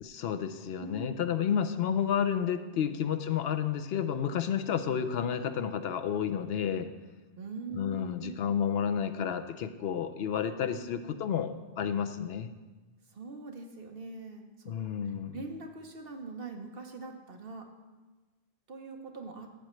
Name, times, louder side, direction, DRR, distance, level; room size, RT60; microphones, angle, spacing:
voice 1, 0.0-6.9 7.7-12.5 14.7-15.4, left 8 dB, 75° left, 10 dB, 0.8 m, -31 dB
voice 2, 0.8-1.2 2.9-3.0 7.4-8.4 10.8-10.9 13.1-17.7 18.7-19.5, right 3 dB, 65° right, 3 dB, 1.1 m, -43 dB
14.5 x 7.6 x 3.1 m, 1.2 s
omnidirectional pair, 1.1 m